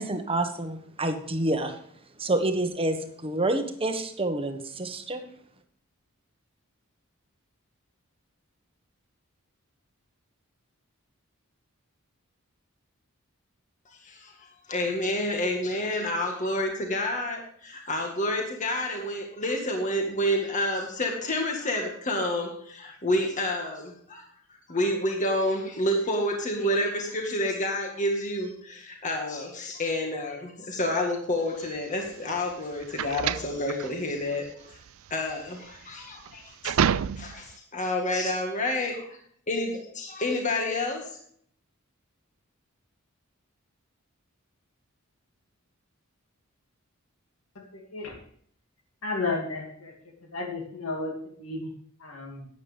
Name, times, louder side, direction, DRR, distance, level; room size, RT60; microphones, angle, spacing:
voice 1, 0.0-1.8 2.2-5.2, right 2 dB, 25° right, 6 dB, 1.3 m, -28 dB
voice 2, 14.0-14.3 14.7-24.3 24.7-34.8 35.1-36.8 37.2-39.2 39.5-41.1, left 1 dB, 35° left, 1 dB, 1.8 m, -29 dB
sound 1, 31.6-37.6, right 8 dB, 70° right, 0.4 m, -30 dB
voice 3, 47.7-48.2 49.0-49.9 50.3-51.7 52.0-52.5, left 3 dB, 75° left, 0 dB, 2.5 m, -33 dB
13.0 x 9.4 x 3.5 m, 0.62 s
head